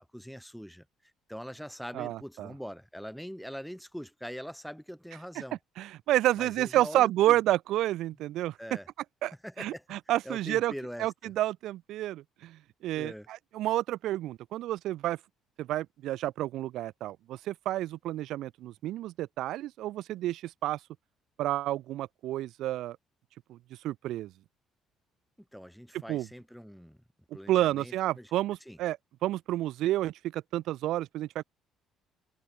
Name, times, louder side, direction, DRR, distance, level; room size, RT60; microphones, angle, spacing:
voice 1, 0.1-0.9 1.3-5.6 6.4-7.4 8.6-8.9 9.4-9.8 10.2-11.3 12.9-13.3 25.5-27.0 27.3-28.3 28.7-28.8, equal, ahead, 5.9 m, -43 dB
voice 2, 1.9-2.5 5.8-8.5 9.2-10.7 11.0-15.2 15.6-20.8 21.4-23.0 23.5-23.6 23.8-24.3 26.1-26.3 27.5-31.4, right 14 dB, 75° right, 2.5 m, -30 dB
cardioid pair, 125°, 0 cm